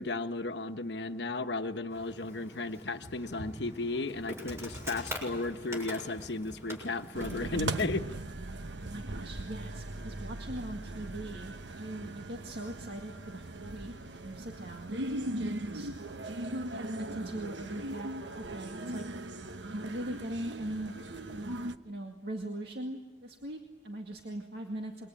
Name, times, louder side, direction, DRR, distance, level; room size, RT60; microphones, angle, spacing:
voice 1, 0.0-8.1, left 3 dB, 70° left, 8 dB, 1.2 m, -34 dB
Insect, 1.9-8.0, equal, 15° right, 6.9 m, -44 dB
sound 1, 7.1-21.8, right 2 dB, 85° right, 1.1 m, -39 dB
voice 2, 8.8-13.9 14.2-15.9 16.7-19.0 19.7-20.9 21.3-21.5 21.8-25.1, right 1 dB, 65° right, 2 dB, 2.1 m, -41 dB
27.0 x 23.0 x 9.0 m, 1.3 s
head